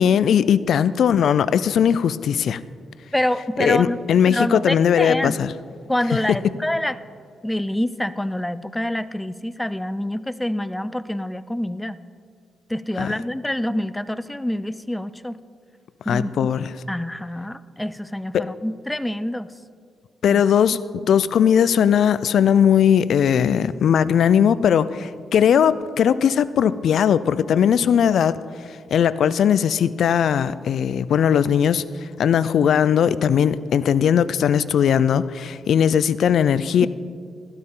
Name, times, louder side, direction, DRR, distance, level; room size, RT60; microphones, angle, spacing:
voice 1, 0.0-2.6 3.6-5.5 13.0-13.1 16.1-16.7 18.3-18.4 20.2-28.4 28.9-31.8 32.2-36.9, left 8 dB, 70° left, 16 dB, 0.4 m, -18 dB
voice 2, 3.1-5.4 5.9-7.0 7.4-12.0 12.7-15.4 16.1-16.5 16.9-19.5 20.3-20.4, left 1 dB, 10° left, 15 dB, 0.5 m, -26 dB
16.0 x 14.0 x 3.8 m, 2.1 s
cardioid pair, 85°, 0 cm